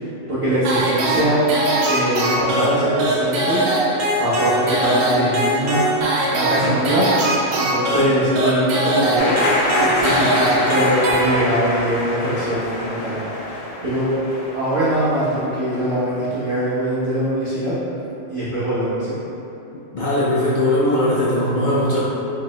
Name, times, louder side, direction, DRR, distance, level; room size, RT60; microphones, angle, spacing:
voice 1, 0.3-1.5 1.9-3.6 4.2-5.8 6.3-7.1 7.5-9.3 9.7-14.2 14.5-17.7 18.3-19.2, equal, 30° right, -14 dB, 0.7 m, -22 dB
sound 1, 0.6-11.8, right 1 dB, 85° right, 1.0 m, -21 dB
sound 2, 9.2-15.8, left 1 dB, 90° left, 1.0 m, -25 dB
voice 2, 19.9-22.0, left 1 dB, 70° left, -8 dB, 0.4 m, -19 dB
4.8 x 2.1 x 2.9 m, 3.0 s
omnidirectional pair, 1.3 m